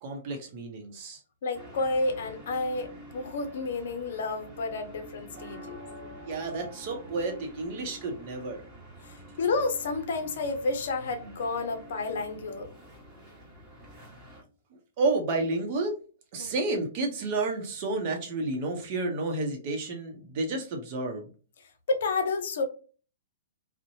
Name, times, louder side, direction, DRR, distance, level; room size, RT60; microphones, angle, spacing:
voice 1, 0.0-1.2 6.2-8.6 15.0-15.9 16.3-21.3, right 2 dB, 45° right, 3 dB, 0.7 m, -31 dB
voice 2, 1.4-5.8 9.0-12.7 16.4-16.5 21.9-22.6, left 3 dB, 60° left, 6 dB, 0.5 m, -30 dB
sound 1, 1.5-14.4, equal, 15° right, 1.3 m, -48 dB
2.6 x 2.1 x 2.6 m, 0.37 s
hypercardioid pair, 120°, 0 cm